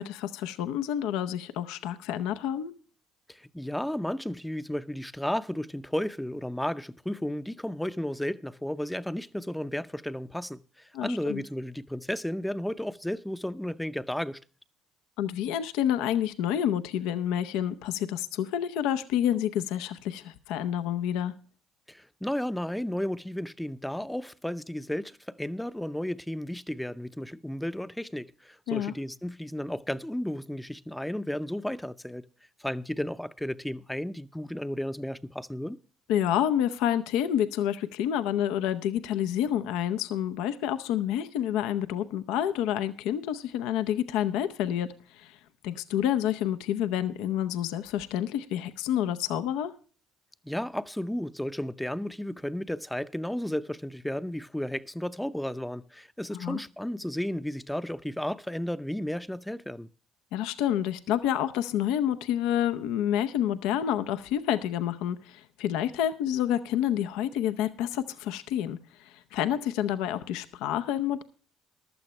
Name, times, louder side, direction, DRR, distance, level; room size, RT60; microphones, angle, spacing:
voice 1, 0.0-2.7 10.9-11.4 15.2-21.3 28.7-28.9 36.1-44.9 45.1-45.4 45.6-49.7 56.3-56.6 60.3-71.2, left 10 dB, 80° left, 0.7 m, -28 dB
voice 2, 3.3-14.4 21.9-32.3 32.6-35.8 50.4-59.9, left 1 dB, 5° left, 0.7 m, -33 dB
15.0 x 12.0 x 3.2 m
supercardioid pair, 80°, 0 cm